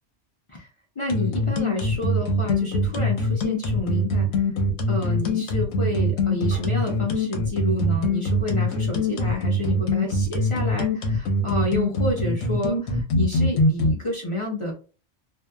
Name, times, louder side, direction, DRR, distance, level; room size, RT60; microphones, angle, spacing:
voice 1, 1.0-4.5 4.9-14.7, left 1 dB, 40° left, -1 dB, 0.4 m, -29 dB
sound 1, 1.1-13.9, left 1 dB, 80° left, 1.0 m, -23 dB
2.7 x 2.2 x 2.2 m, 0.34 s
omnidirectional pair, 1.4 m